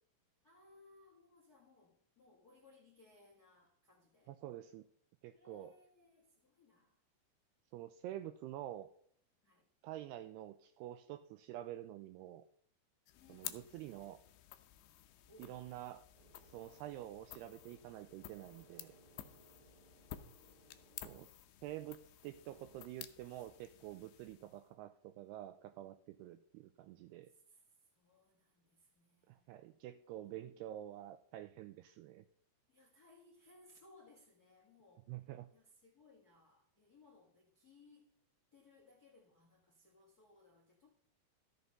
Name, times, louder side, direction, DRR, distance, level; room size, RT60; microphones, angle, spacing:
voice 1, 0.4-4.3 5.3-7.0 9.4-9.7 13.1-13.9 15.3-15.7 20.0-21.2 27.3-29.6 30.2-30.3 32.7-35.1 35.5-38.1 38.5-40.9, left 3 dB, 45° left, 1.2 m, -65 dB
voice 2, 4.3-4.9 5.2-5.8 7.7-8.9 9.8-12.5 13.3-14.2 15.4-16.0 16.3-19.0 21.0-21.4 21.6-27.3 29.3-32.3 35.1-35.5, right 13 dB, 85° right, 2.3 m, -48 dB
sound 1, 13.1-24.7, left 13 dB, 80° left, 2.4 m, -54 dB
sound 2, 16.1-21.3, right 4 dB, 60° right, 3.5 m, -66 dB
13.5 x 6.8 x 5.3 m
omnidirectional pair, 5.1 m